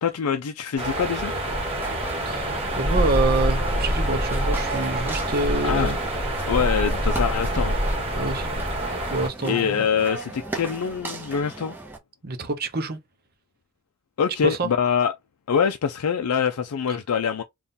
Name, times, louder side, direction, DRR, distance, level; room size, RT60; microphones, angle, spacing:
voice 1, 0.0-1.3 5.6-5.9 6.5-7.8 9.4-11.7 14.2-15.1 15.5-17.4, left 7 dB, 85° left, 0.4 m, -24 dB
sound 1, 0.8-9.3, right 1 dB, 25° right, 1.5 m, -25 dB
sound 2, 1.7-12.0, right 2 dB, 10° right, 0.8 m, -38 dB
voice 2, 2.3-6.0 8.1-8.7 9.1-9.9 12.2-13.0 14.4-14.7 16.9-17.0, right 2 dB, 45° right, 0.7 m, -27 dB
3.5 x 2.4 x 4.0 m
head